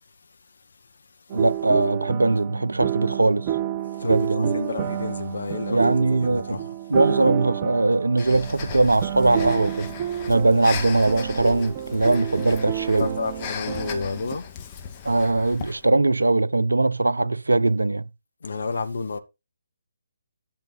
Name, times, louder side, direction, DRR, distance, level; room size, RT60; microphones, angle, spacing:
sound 1, 1.3-14.4, right 11 dB, 30° right, 0.7 m, -30 dB
voice 1, 1.3-3.5 4.0-4.7 5.7-6.6 6.9-9.9 10.3-13.2 15.0-18.1, right 2 dB, 75° right, 0.8 m, -21 dB
voice 2, 3.9-5.9 6.2-6.6 13.0-14.5 18.4-19.2, left 4 dB, 60° left, 1.7 m, -31 dB
Breathing, 8.2-15.8, left 7 dB, 25° left, 2.0 m, -37 dB
12.0 x 6.6 x 4.2 m
figure-of-eight pair, 140°, 0 cm